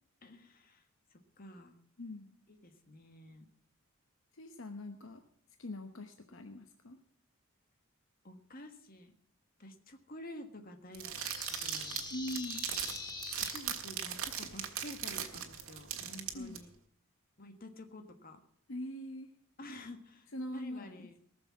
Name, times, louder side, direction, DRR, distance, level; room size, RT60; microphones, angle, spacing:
voice 1, 0.2-0.8 1.4-1.8 2.5-3.5 8.2-9.1 9.6-12.1 13.5-16.7 17.4-18.4 19.6-21.2, left 1 dB, 40° left, 6 dB, 1.5 m, -50 dB
voice 2, 2.0-2.3 4.3-5.3 5.6-7.0 12.1-12.7 16.3-16.6 18.7-19.4 20.3-21.2, left 1 dB, 65° left, 6 dB, 1.0 m, -42 dB
sound 1, 10.9-16.6, right 9 dB, 75° right, 1.6 m, -39 dB
sound 2, 11.2-13.6, left 3 dB, 20° left, 2.0 m, -43 dB
19.0 x 7.0 x 7.3 m, 0.63 s
head